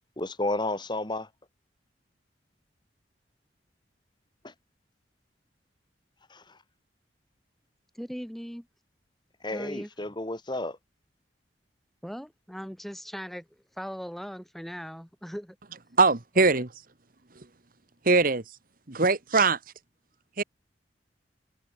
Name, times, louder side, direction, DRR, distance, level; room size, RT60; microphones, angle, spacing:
voice 1, 0.2-1.3 4.4-4.5 6.3-6.6 9.4-10.8, left 2 dB, 25° left, 2.4 m, -32 dB
voice 2, 7.9-8.7 9.5-9.9 12.0-13.5 13.8-15.6, equal, ahead, 2.6 m, -39 dB
voice 3, 16.0-16.7 18.0-18.4 18.9-19.6 20.4-20.5, right 3 dB, 50° right, 1.5 m, -21 dB
open air
head